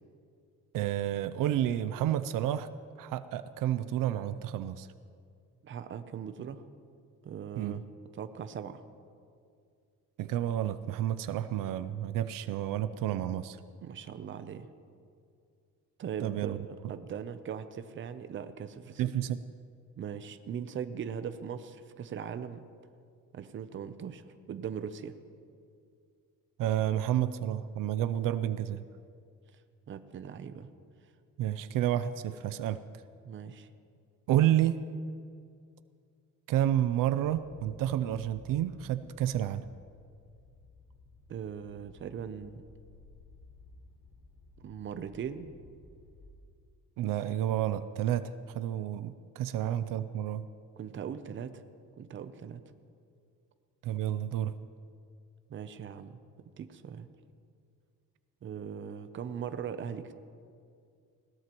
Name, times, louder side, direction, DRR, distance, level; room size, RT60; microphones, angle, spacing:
voice 1, 0.7-2.7 3.0-4.9 7.6-7.8 10.2-13.6 16.2-16.7 19.0-19.4 26.6-28.9 31.4-32.8 34.3-34.8 36.5-39.6 47.0-50.5 53.8-54.5, right 11 dB, 80° right, 12 dB, 0.6 m, -30 dB
voice 2, 5.6-6.6 7.2-7.8 8.1-8.8 13.8-14.7 16.0-19.0 20.0-22.6 23.3-25.1 29.9-30.7 33.2-33.7 41.3-42.6 44.6-45.5 50.8-51.6 52.0-52.6 55.5-56.2 56.6-57.1 58.4-60.1, right 7 dB, 35° right, 10 dB, 0.6 m, -40 dB
sound 1, 37.0-46.3, left 2 dB, 80° left, 2.7 m, -56 dB
20.5 x 17.5 x 3.0 m, 2.3 s
cardioid pair, 165°, 33 cm